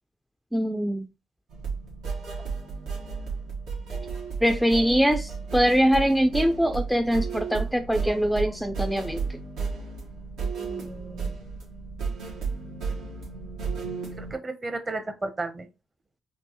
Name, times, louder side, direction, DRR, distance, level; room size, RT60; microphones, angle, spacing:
voice 1, 0.5-1.1 4.4-9.2, equal, ahead, 7 dB, 0.3 m, -23 dB
sound 1, 1.5-14.3, right 5 dB, 90° right, 1.5 m, -33 dB
voice 2, 10.6-11.3 14.2-15.7, right 2 dB, 25° right, 8 dB, 0.7 m, -34 dB
4.4 x 2.7 x 2.9 m, 0.29 s
cardioid pair, 90°, 0 cm